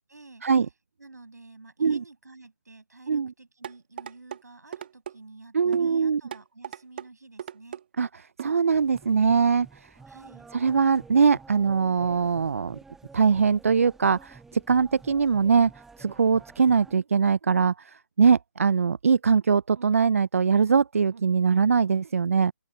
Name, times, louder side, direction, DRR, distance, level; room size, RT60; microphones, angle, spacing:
voice 1, 0.1-0.4 1.0-7.8 10.1-10.5, right 3 dB, 75° right, 7.7 m, -50 dB
sound 1, 3.6-4.4 4.7-5.2 5.7-5.9 6.3-7.1 7.4-7.8 8.4-8.6 9.0-9.1, right 9 dB, 35° right, 2.1 m, -37 dB
voice 2, 5.5-6.2 8.0-8.1 8.4-9.9 10.5-12.8 13.1-15.7 16.0-22.5, right 5 dB, 55° right, 0.6 m, -22 dB
sound 2, 8.7-16.9, right 4 dB, 5° right, 1.9 m, -50 dB
figure-of-eight pair, 150°, 9 cm